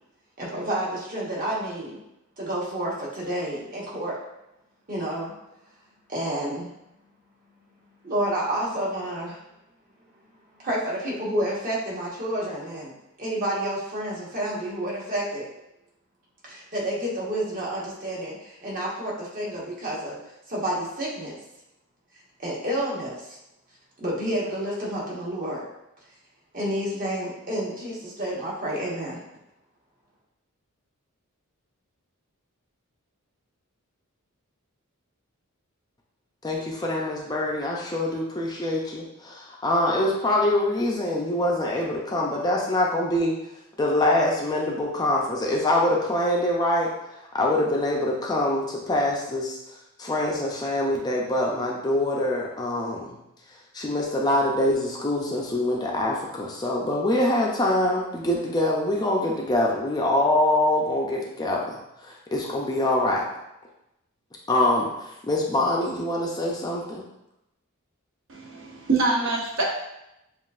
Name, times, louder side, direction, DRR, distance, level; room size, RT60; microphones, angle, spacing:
voice 1, 0.4-2.0 2.4-4.2 4.9-5.3 6.1-6.7 8.0-9.4 10.6-12.9 13.2-15.5 16.4-20.1 20.5-21.3 22.4-23.4 24.0-25.6 26.5-29.2, right 1 dB, 40° right, -5 dB, 1.2 m, -29 dB
voice 2, 36.4-43.3 43.8-46.9 47.3-49.6 50.0-53.1 53.7-61.8 62.0-63.2 64.5-64.9 65.3-67.0, left 1 dB, 20° left, -2 dB, 0.5 m, -24 dB
voice 3, 68.3-69.6, right 3 dB, 60° right, -2 dB, 0.9 m, -25 dB
7.3 x 2.5 x 2.4 m, 0.88 s
head